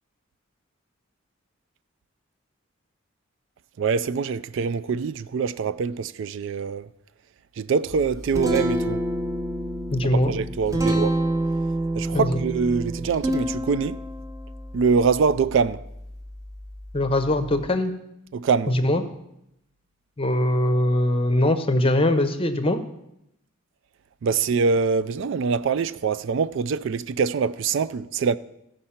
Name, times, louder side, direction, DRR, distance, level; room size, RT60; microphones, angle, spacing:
voice 1, 3.8-6.9 7.6-9.0 10.1-11.2 12.0-14.0 14.7-15.8 18.3-18.8 24.2-28.4, right 5 dB, 60° right, 0.3 m, -24 dB
Guitar, 7.9-17.7, right 1 dB, 15° right, 0.8 m, -29 dB
voice 2, 9.9-10.3 12.1-12.3 16.9-17.9 18.7-19.0 20.2-22.8, left 1 dB, 25° left, 0.7 m, -21 dB
15.0 x 5.4 x 5.7 m
head